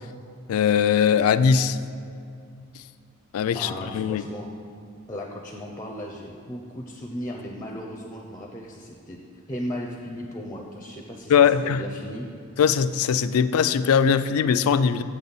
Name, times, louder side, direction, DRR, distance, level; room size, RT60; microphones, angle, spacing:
voice 1, 0.5-1.8 3.3-4.2 11.3-11.8 12.6-15.0, left 7 dB, 80° left, 13 dB, 0.3 m, -20 dB
voice 2, 3.5-4.5 5.1-9.2 9.5-11.3 11.6-12.3, equal, 15° left, 1 dB, 0.5 m, -36 dB
7.9 x 4.0 x 6.9 m, 2.4 s
head